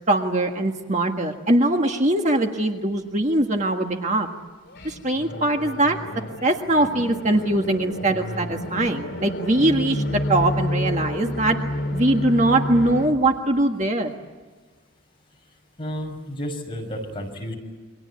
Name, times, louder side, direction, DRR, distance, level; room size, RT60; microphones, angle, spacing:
voice 1, 0.1-4.3 4.8-6.0 6.4-11.6 11.9-14.1, right 1 dB, 35° right, 3 dB, 1.6 m, -21 dB
sound 1, 4.7-13.1, left 1 dB, 50° left, 3.0 m, -30 dB
voice 2, 15.8-17.5, equal, 25° left, 1 dB, 6.0 m, -31 dB
29.0 x 24.5 x 8.4 m, 1.3 s
head